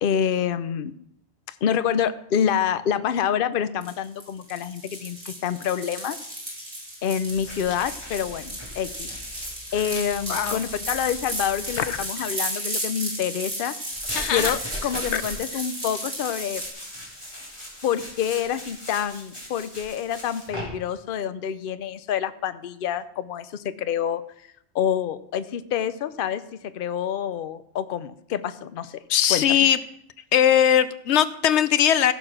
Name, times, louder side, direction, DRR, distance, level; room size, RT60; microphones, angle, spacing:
voice 1, 0.0-0.9 1.5-6.2 7.0-9.1 9.4-13.7 14.3-16.6 17.8-24.2 24.7-29.0 29.3-29.6, left 8 dB, 60° left, 13 dB, 0.8 m, -27 dB
sound 1, 3.8-16.7, right 1 dB, 60° right, 4.1 m, -34 dB
sound 2, 7.3-12.0 13.9-20.6, left 1 dB, 25° left, 4.2 m, -39 dB
voice 2, 10.3-10.6 11.8-12.0 14.1-14.6 15.1-15.2 29.1-29.8 30.3-32.1, left 9 dB, 85° left, 14 dB, 1.0 m, -20 dB
16.0 x 6.9 x 6.1 m, 0.72 s
omnidirectional pair, 1.1 m